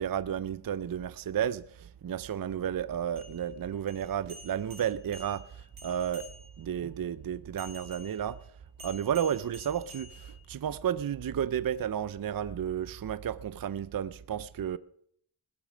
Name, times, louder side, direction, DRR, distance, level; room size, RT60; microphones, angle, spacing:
voice 1, 0.0-6.3 6.6-8.4 8.8-14.8, right 9 dB, 45° right, 0.6 m, -32 dB
sound 1, 3.1-6.7 7.6-10.8, left 1 dB, 85° right, 5.0 m, -51 dB
19.5 x 8.7 x 5.0 m
wide cardioid pair, 75°, 49 cm